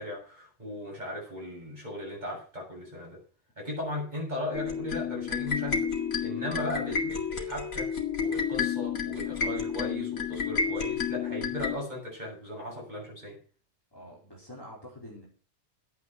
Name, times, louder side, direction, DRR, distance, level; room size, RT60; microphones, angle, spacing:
voice 1, 0.0-3.2 3.6-5.9 6.2-7.9 8.2-13.4, left 1 dB, 35° right, -3 dB, 7.9 m, -37 dB
sound 1, 4.5-11.8, left 6 dB, 85° left, 2.6 m, -31 dB
voice 2, 13.9-15.3, equal, 15° left, -4 dB, 4.2 m, -46 dB
12.0 x 9.2 x 6.1 m, 0.37 s
omnidirectional pair, 1.4 m